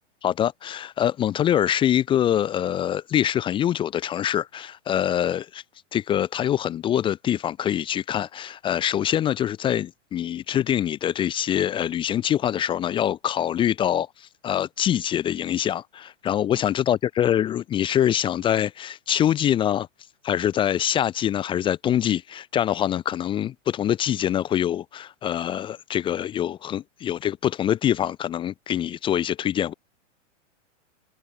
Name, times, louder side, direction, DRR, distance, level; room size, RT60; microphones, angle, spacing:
voice 1, 0.2-5.6 5.9-19.9 20.2-29.7, left 10 dB, 15° left, 0.6 m, -24 dB
hypercardioid pair, 145°, 38 cm